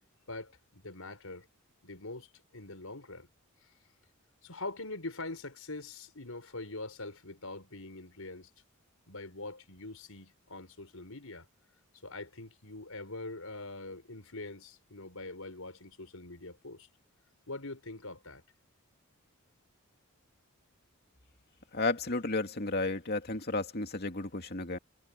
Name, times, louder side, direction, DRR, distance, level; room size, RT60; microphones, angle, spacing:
voice 1, 0.3-1.5 1.8-3.3 4.4-8.5 9.1-11.5 12.0-16.9 17.5-18.4, left 2 dB, 75° left, 5.4 m, -43 dB
voice 2, 21.7-24.8, left 2 dB, 45° left, 2.6 m, -32 dB
head